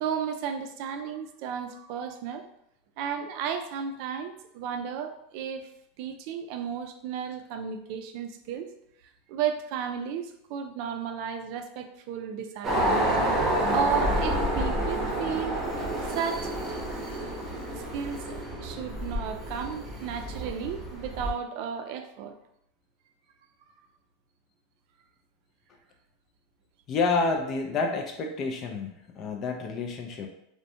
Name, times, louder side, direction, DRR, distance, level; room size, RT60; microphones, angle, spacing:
voice 1, 0.0-2.4 3.0-5.7 6.0-8.7 9.3-13.1 13.7-15.6 16.0-16.5 17.8-22.4, right 7 dB, 60° right, 6 dB, 0.3 m, -33 dB
sound 1, 12.6-21.3, right 1 dB, 20° right, 0.8 m, -29 dB
voice 2, 26.9-30.3, left 4 dB, 40° left, 3 dB, 0.3 m, -29 dB
2.4 x 2.1 x 2.6 m, 0.75 s
supercardioid pair, 125°, 0 cm